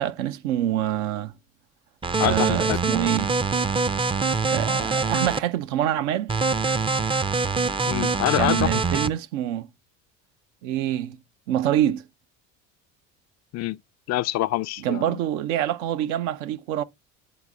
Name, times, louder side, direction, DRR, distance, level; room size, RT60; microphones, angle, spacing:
voice 1, 0.0-1.3 2.2-3.3 4.5-6.4 8.4-9.7 10.6-11.2 11.5-12.0 14.8-16.8, right 11 dB, 80° right, 0.7 m, -26 dB
sound 1, 2.0-5.4 6.3-9.1, right 4 dB, 15° right, 0.4 m, -24 dB
voice 2, 2.2-2.8 7.8-8.8 13.5-13.8 14.1-15.2, left 15 dB, 50° left, 0.4 m, -25 dB
8.0 x 4.1 x 3.4 m
hypercardioid pair, 75°, 36 cm